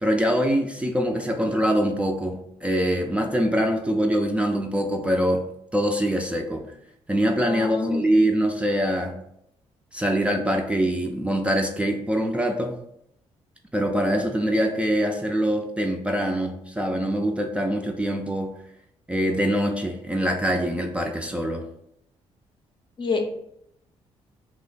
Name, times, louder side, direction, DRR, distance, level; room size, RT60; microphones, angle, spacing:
voice 1, 0.0-5.5 5.7-6.6 7.1-9.2 9.9-12.7 13.7-18.5 19.1-21.6, equal, 10° right, 3 dB, 0.3 m, -24 dB
voice 2, 7.4-8.0 23.0-23.2, left 4 dB, 40° left, 5 dB, 0.5 m, -26 dB
2.9 x 2.0 x 3.9 m, 0.75 s
cardioid pair, 90°, 12 cm